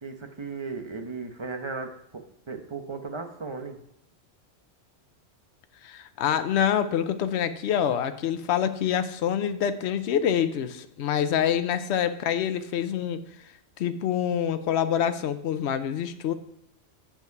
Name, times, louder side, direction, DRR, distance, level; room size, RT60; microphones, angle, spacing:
voice 1, 0.0-3.8, right 4 dB, 25° right, 5 dB, 0.9 m, -36 dB
voice 2, 5.8-13.3 13.8-16.3, left 9 dB, 70° left, 10 dB, 0.9 m, -26 dB
8.2 x 7.2 x 4.7 m, 0.78 s
omnidirectional pair, 1.2 m